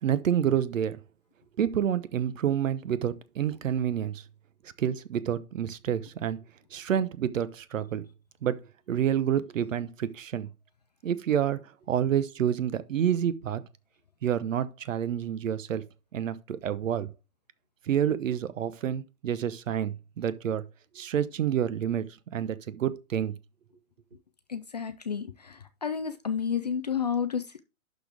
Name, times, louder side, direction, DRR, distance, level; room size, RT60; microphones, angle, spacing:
voice 1, 0.0-1.0 1.6-4.2 4.8-6.4 6.7-8.0 8.4-8.6 8.9-10.5 11.0-13.6 14.2-15.8 16.1-17.1 17.9-20.6 20.9-22.0 22.3-23.3, right 9 dB, 60° right, 1.0 m, -28 dB
voice 2, 24.5-27.6, left 7 dB, 30° left, 0.4 m, -31 dB
11.5 x 4.2 x 3.4 m
hypercardioid pair, 140°, 43 cm